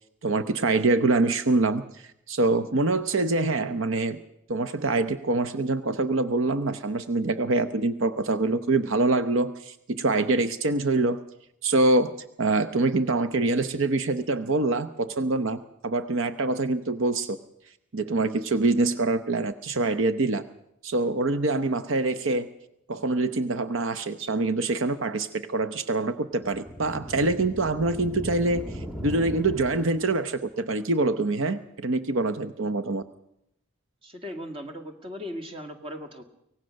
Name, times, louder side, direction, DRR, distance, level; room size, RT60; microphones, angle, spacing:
voice 1, 0.2-4.2 4.5-11.2 11.6-17.4 17.9-20.4 20.8-22.5 22.9-33.0, right 2 dB, 70° right, 11 dB, 0.8 m, -25 dB
sound 1, 26.4-30.3, equal, ahead, 1.3 m, -38 dB
voice 2, 34.0-36.2, equal, 25° right, 5 dB, 2.0 m, -38 dB
24.0 x 18.5 x 6.4 m, 0.77 s
head